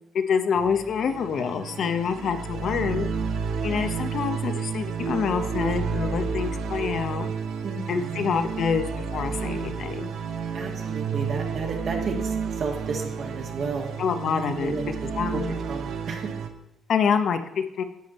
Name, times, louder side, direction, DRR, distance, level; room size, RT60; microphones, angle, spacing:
voice 1, 0.1-3.1 3.6-7.3 7.9-10.1 14.0-14.7 15.2-15.5 16.9-17.8, left 6 dB, 65° left, 8 dB, 0.8 m, -26 dB
sound 1, 0.5-16.5, right 6 dB, 75° right, 0.9 m, -31 dB
voice 2, 7.6-8.2 10.5-14.0 14.6-16.3, right 4 dB, 60° right, 1 dB, 2.1 m, -33 dB
10.5 x 7.8 x 4.2 m, 0.93 s
cardioid pair, 90°, 0 cm